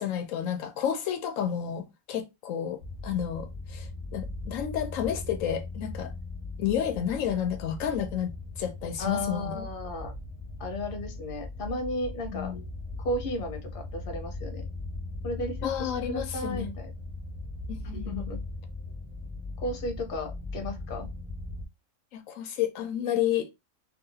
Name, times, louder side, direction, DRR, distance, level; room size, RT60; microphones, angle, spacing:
voice 1, 0.0-6.1 6.6-9.7 12.3-12.6 15.6-16.7 17.7-18.3 22.1-23.5, left 9 dB, 80° left, 1.0 m, -31 dB
sound 1, 2.8-21.7, left 2 dB, 30° right, 1.2 m, -39 dB
voice 2, 9.0-10.1 10.6-12.5 13.0-14.6 15.2-16.9 17.8-18.4 19.6-21.1, left 1 dB, 50° left, 0.9 m, -34 dB
2.8 x 2.8 x 2.7 m
omnidirectional pair, 1.4 m